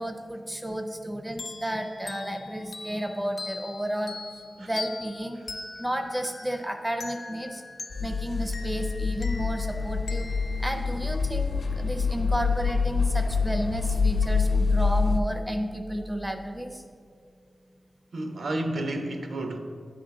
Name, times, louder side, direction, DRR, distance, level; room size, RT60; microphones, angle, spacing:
voice 1, 0.0-4.2 4.6-5.4 5.8-7.6 8.0-10.3 10.6-16.8, equal, 10° right, 5 dB, 0.4 m, -32 dB
sound 1, 1.4-11.7, left 3 dB, 50° left, 0.6 m, -42 dB
sound 2, 7.9-15.2, left 4 dB, 85° left, 0.8 m, -26 dB
voice 2, 18.1-19.6, right 1 dB, 70° right, 6 dB, 0.7 m, -31 dB
9.5 x 3.8 x 5.8 m, 2.2 s
wide cardioid pair, 130°, 0 cm